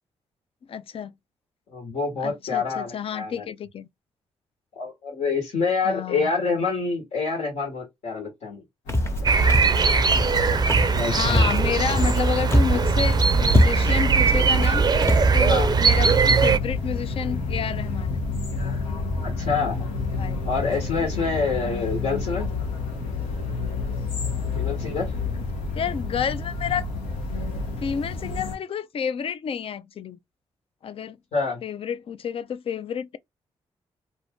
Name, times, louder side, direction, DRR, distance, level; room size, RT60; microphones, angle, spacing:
voice 1, 0.7-1.1 2.2-3.9 5.8-6.3 11.1-14.8 15.3-18.2 20.1-20.5 21.7-21.8 25.7-26.9 27.5-30.2 30.8-31.2 31.6-33.2, left 7 dB, 50° left, 0.4 m, -30 dB
voice 2, 1.7-3.4 4.8-8.6 10.9-11.6 15.5-15.7 19.2-19.8 20.4-22.5 24.5-25.1 31.3-31.6, left 4 dB, 70° left, 1.3 m, -27 dB
sound 1, 8.9-28.6, left 3 dB, 90° left, 0.8 m, -29 dB
Walk footsteps, 8.9-9.2 9.5-9.8 10.1-10.4 10.7-11.0 11.3-12.2 12.5-12.8 13.1-13.2 13.5-14.0 14.5-14.7 15.0-15.3, equal, 20° left, 0.9 m, -22 dB
sound 2, 9.3-16.6, right 5 dB, 35° right, 0.4 m, -20 dB
2.5 x 2.4 x 3.6 m
supercardioid pair, 45°, 12 cm